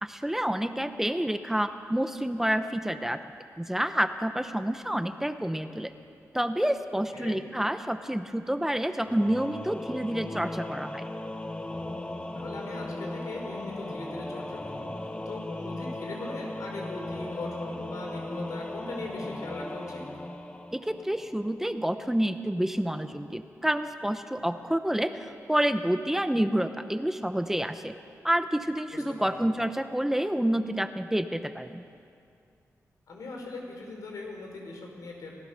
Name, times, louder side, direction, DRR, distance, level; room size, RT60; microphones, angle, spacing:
voice 1, 0.0-3.2 3.6-5.9 6.3-11.1 20.7-28.0 28.2-31.9, right 1 dB, 5° right, 9 dB, 0.8 m, -28 dB
voice 2, 7.1-7.4 12.3-20.0 28.9-29.4 33.1-35.4, left 2 dB, 85° left, 0 dB, 4.7 m, -40 dB
Singing / Musical instrument, 9.0-21.5, left 1 dB, 20° left, 1.1 m, -37 dB
28.0 x 15.0 x 6.6 m, 2.4 s
wide cardioid pair, 100°, 6 cm